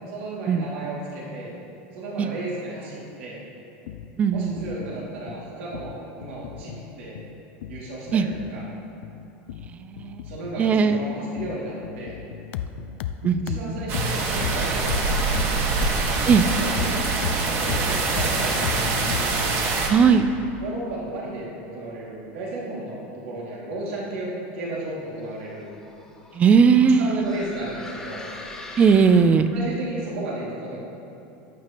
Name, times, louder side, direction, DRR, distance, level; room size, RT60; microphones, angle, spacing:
voice 1, 0.1-1.5 1.9-3.4 4.3-7.2 7.7-8.7 10.2-12.2 13.4-15.7 16.4-17.1 17.4-19.4 20.6-25.7 27.0-28.2 29.5-30.8, right 2 dB, 85° right, -5 dB, 2.3 m, -34 dB
sound 1, 3.9-19.5, left 9 dB, 75° left, 0.4 m, -34 dB
voice 2, 4.2-4.6 8.1-8.3 9.8-10.2 10.6-11.0 13.2-13.8 16.3-16.4 19.9-20.3 26.4-27.2 28.8-29.5, right 6 dB, 20° right, 11 dB, 0.4 m, -18 dB
sound 2, 13.9-19.9, right 3 dB, 40° right, 1.3 m, -24 dB
sound 3, 25.2-29.7, left 2 dB, 10° left, 0.9 m, -42 dB
14.5 x 9.6 x 3.0 m, 2.8 s
supercardioid pair, 150°, 6 cm